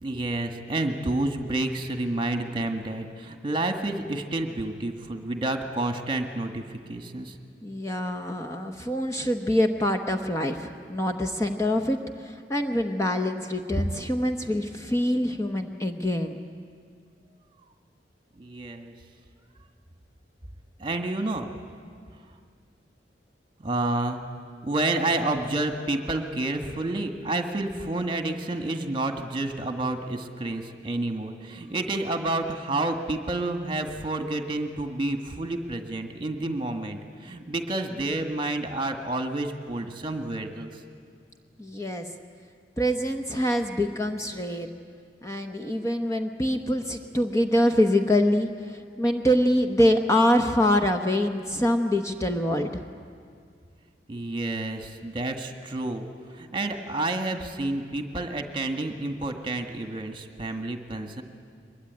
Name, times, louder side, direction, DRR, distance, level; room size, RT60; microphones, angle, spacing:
voice 1, 0.0-7.3 18.4-18.9 20.8-21.5 23.6-24.2 24.6-40.7 54.1-61.2, right 2 dB, 30° right, 6 dB, 1.7 m, -29 dB
voice 2, 7.6-16.4 41.6-42.1 42.8-44.7 45.2-52.9, left 1 dB, 15° left, 5 dB, 1.0 m, -25 dB
23.5 x 21.5 x 9.5 m, 2.2 s
head